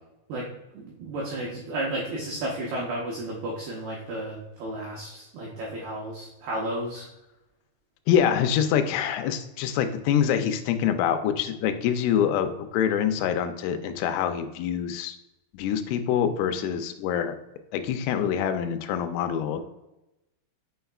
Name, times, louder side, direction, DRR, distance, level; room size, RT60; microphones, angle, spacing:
voice 1, 0.3-7.1, right 1 dB, 90° right, -2 dB, 2.2 m, -33 dB
voice 2, 8.1-15.2 15.5-17.3 17.7-19.6, left 8 dB, 85° left, 8 dB, 3.3 m, -25 dB
6.7 x 6.4 x 2.3 m, 0.94 s
omnidirectional pair, 6.0 m